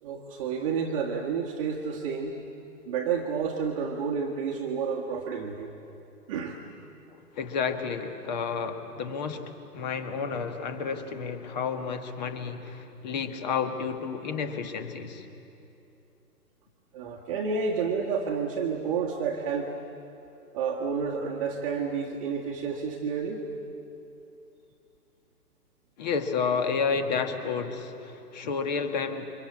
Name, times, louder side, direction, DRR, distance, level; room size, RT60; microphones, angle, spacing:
voice 1, 0.0-2.4 2.8-5.7 6.3-6.6 16.9-19.7 20.5-23.4, right 6 dB, 20° right, -2 dB, 1.4 m, -30 dB
voice 2, 7.1-15.2 26.0-29.3, left 5 dB, 25° left, 8 dB, 1.6 m, -31 dB
28.5 x 24.5 x 8.5 m, 2.8 s
hypercardioid pair, 150°, 48 cm